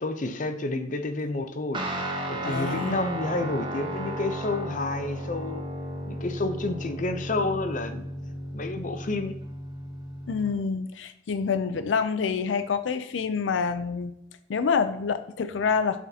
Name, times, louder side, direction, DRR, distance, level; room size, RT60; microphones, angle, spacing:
voice 1, 0.0-1.8 2.3-5.6 6.1-8.0 8.5-9.4, left 2 dB, 45° left, 9 dB, 0.6 m, -30 dB
Guitar, 1.7-10.6, right 1 dB, 25° right, 0.9 m, -34 dB
voice 2, 2.4-3.0 10.3-14.1 14.5-16.0, left 5 dB, 85° left, 11 dB, 0.4 m, -27 dB
7.3 x 5.9 x 2.8 m, 0.79 s
head